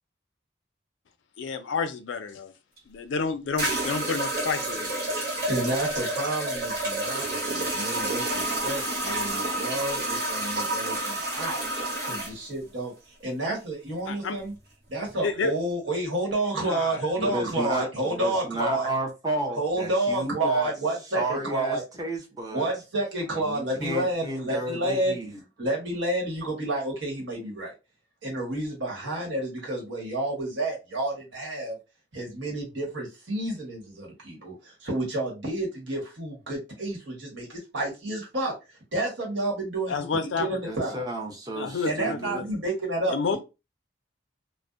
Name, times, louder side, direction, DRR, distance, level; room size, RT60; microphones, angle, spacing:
voice 1, 1.4-2.5 2.9-5.0 14.1-14.4 15.2-15.5 16.6-17.0 39.9-40.5 41.6-42.6 43.1-43.4, left 4 dB, 90° left, 0.4 m, -30 dB
sound 1, 2.8-2.9 3.6-12.3, right 1 dB, 55° right, 1.0 m, -29 dB
voice 2, 5.4-11.6 12.0-14.5 14.9-18.9 19.6-21.8 22.5-25.2 25.6-27.7 28.2-31.8 32.1-38.5 38.9-39.9 40.4-40.9 41.8-43.4, right 1 dB, 80° right, 1.2 m, -30 dB
voice 3, 17.2-20.7 21.1-22.7 23.3-25.4 40.6-42.4, right 2 dB, 20° right, 0.6 m, -32 dB
2.5 x 2.1 x 2.4 m
head